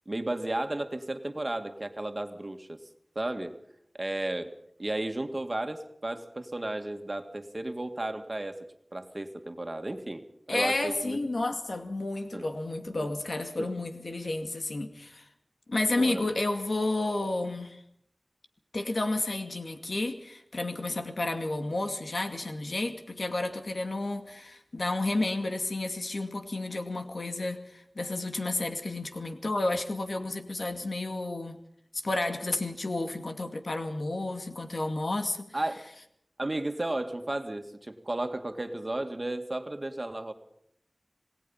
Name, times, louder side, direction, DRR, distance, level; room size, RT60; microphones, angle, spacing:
voice 1, 0.1-2.8 3.2-3.6 4.0-4.5 4.8-8.6 8.9-11.2 12.3-12.5 13.0-13.1 13.6-13.7 16.0-16.3 35.5-35.8 36.4-40.3, right 1 dB, 40° right, 2.2 m, -33 dB
voice 2, 10.5-15.2 15.7-17.8 18.7-31.6 31.9-35.5, left 2 dB, 75° left, 2.3 m, -31 dB
27.0 x 19.0 x 5.7 m
wide cardioid pair, 55°, 0 cm